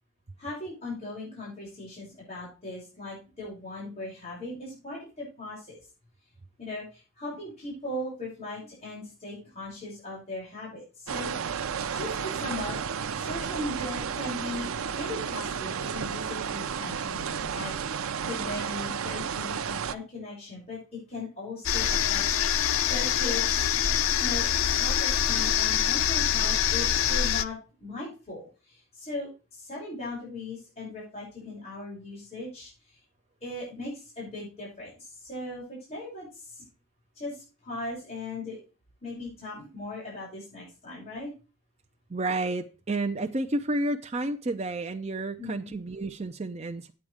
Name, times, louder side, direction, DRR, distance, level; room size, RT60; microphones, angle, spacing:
voice 1, 0.4-5.8 6.6-11.3 11.9-12.8 13.1-22.2 22.9-23.7 24.2-24.5 24.8-33.0 33.4-36.6 37.2-38.6 39.0-41.3 45.4-45.7, left 2 dB, 30° left, 6.0 m, -38 dB
sound 1, 11.1-19.9, right 7 dB, 85° right, 0.5 m, -32 dB
sound 2, 21.6-27.4, left 9 dB, 80° left, 0.6 m, -25 dB
voice 2, 42.1-46.9, right 2 dB, 30° right, 0.5 m, -30 dB
8.8 x 8.2 x 4.8 m
head